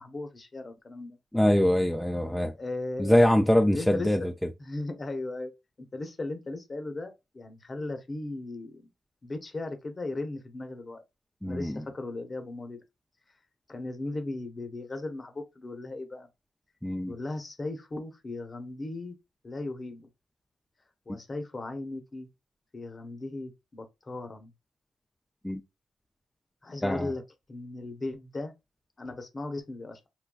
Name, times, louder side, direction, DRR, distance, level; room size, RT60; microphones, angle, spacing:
voice 1, 0.0-1.2 2.6-4.3 4.6-5.5 5.8-8.9 9.2-11.0 11.4-12.8 13.7-16.3 17.1-19.1 19.4-20.1 21.1-22.3 22.7-24.5 26.6-27.2 27.5-28.5 29.0-30.1, left 2 dB, 35° left, 0.9 m, -37 dB
voice 2, 1.3-2.5 3.0-4.2 11.4-11.8 16.8-17.1 25.4-25.6 26.8-27.1, left 1 dB, 5° left, 0.4 m, -23 dB
3.8 x 2.2 x 2.3 m
supercardioid pair, 60°, 0 cm